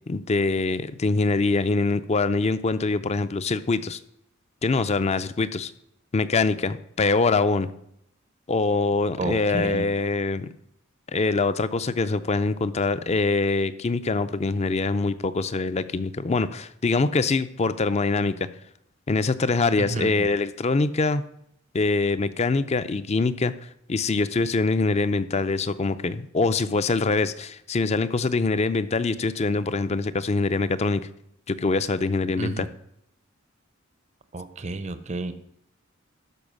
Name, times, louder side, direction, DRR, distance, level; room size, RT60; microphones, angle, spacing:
voice 1, 0.1-4.0 4.6-5.7 6.1-7.7 8.5-10.5 11.1-18.5 19.1-21.2 21.7-23.5 23.9-31.0 31.5-32.7, left 3 dB, 30° left, 13 dB, 0.5 m, -24 dB
voice 2, 9.2-9.9 19.9-20.3 32.4-32.7 34.3-35.3, right 2 dB, 35° right, 11 dB, 0.6 m, -31 dB
12.5 x 4.7 x 6.3 m, 0.74 s
head